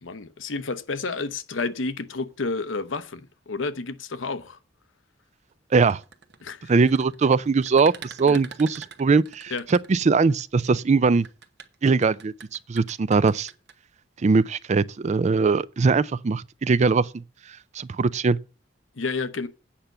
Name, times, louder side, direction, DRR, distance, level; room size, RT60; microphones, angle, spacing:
voice 1, 0.0-4.6 6.4-6.7 8.2-8.4 9.5-9.6 19.0-19.5, left 3 dB, 85° left, 0.9 m, -30 dB
sound 1, 5.7-10.4 11.1-13.7, right 6 dB, 60° right, 1.0 m, -44 dB
voice 2, 6.7-11.3 11.8-12.3 12.7-13.5 14.2-17.2 17.7-18.4, right 4 dB, 35° right, 0.4 m, -21 dB
8.7 x 5.7 x 7.8 m
head